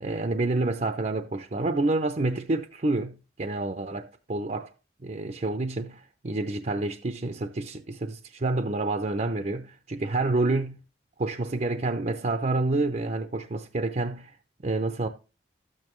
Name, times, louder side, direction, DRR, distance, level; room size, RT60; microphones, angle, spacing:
voice 1, 0.0-4.7 5.0-10.8 11.2-14.4 14.6-15.1, right 2 dB, 40° right, 0.6 m, -28 dB
13.0 x 8.7 x 3.1 m
head